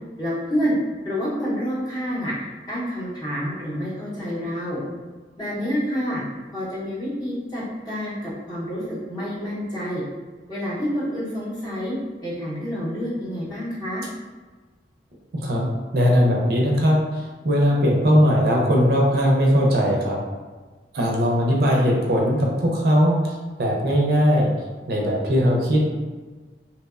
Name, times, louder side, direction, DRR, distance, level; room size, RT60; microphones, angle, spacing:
voice 1, 0.2-0.7 1.0-4.8 5.4-6.2 6.5-10.0 10.5-11.9 12.2-14.0, equal, 20° left, -8 dB, 0.7 m, -28 dB
voice 2, 15.4-17.0 17.4-20.2 20.9-24.5 24.9-25.8, equal, 55° right, -2 dB, 0.4 m, -19 dB
2.8 x 2.0 x 2.3 m, 1.3 s
head